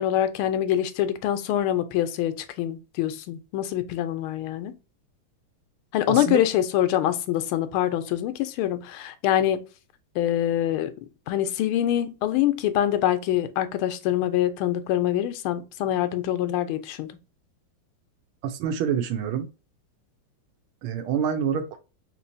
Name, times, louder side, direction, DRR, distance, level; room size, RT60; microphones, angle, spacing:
voice 1, 0.0-4.7 5.9-9.6 10.1-10.9 11.3-17.1, left 12 dB, 90° left, 1.5 m, -25 dB
voice 2, 6.1-6.4 18.4-19.5 20.8-21.8, right 8 dB, 85° right, 1.5 m, -27 dB
3.7 x 3.0 x 2.5 m
omnidirectional pair, 2.3 m